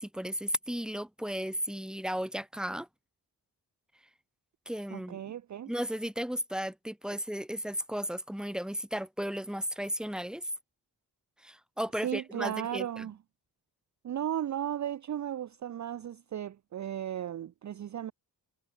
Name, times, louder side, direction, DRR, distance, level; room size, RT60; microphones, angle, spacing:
voice 1, 0.0-2.9 4.7-5.3 5.7-10.5 11.4-13.1, equal, ahead, 2.0 m, -35 dB
voice 2, 4.9-5.7 12.0-13.2 14.0-18.1, right 10 dB, 45° right, 0.5 m, -35 dB
cardioid pair, 105°, 42 cm